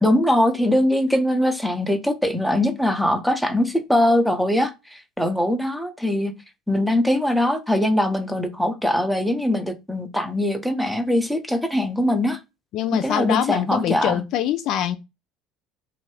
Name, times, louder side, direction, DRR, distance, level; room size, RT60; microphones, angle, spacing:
voice 1, 0.0-6.3 6.7-12.4 12.9-14.2, left 1 dB, ahead, 0.7 m, -21 dB
voice 2, 12.7-15.0, left 11 dB, 60° left, 0.3 m, -24 dB
2.7 x 2.6 x 3.3 m
supercardioid pair, 85°, 0 cm